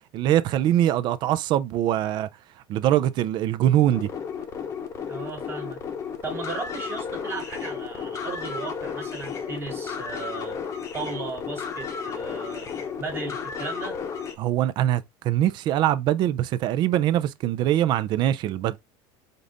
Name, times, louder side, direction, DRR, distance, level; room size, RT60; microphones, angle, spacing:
voice 1, 0.1-2.3 2.7-4.1 14.4-18.8, right 12 dB, 40° right, 0.4 m, -23 dB
sound 1, 3.9-14.3, left 6 dB, 25° left, 0.9 m, -33 dB
voice 2, 5.1-5.8 6.2-10.6 10.9-12.7 13.0-14.0, right 4 dB, 20° right, 1.5 m, -36 dB
5.2 x 2.5 x 3.9 m
cardioid pair, 165°, 12 cm